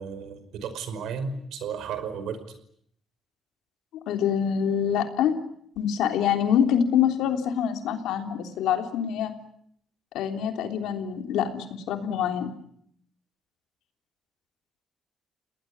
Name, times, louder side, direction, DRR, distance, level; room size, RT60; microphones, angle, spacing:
voice 1, 0.0-2.4, right 6 dB, 80° right, 10 dB, 5.3 m, -33 dB
voice 2, 4.1-5.4 5.8-9.3 10.1-12.5, left 8 dB, 90° left, 5 dB, 3.4 m, -25 dB
30.0 x 19.5 x 9.5 m, 0.70 s
cardioid pair, 90°, 0 cm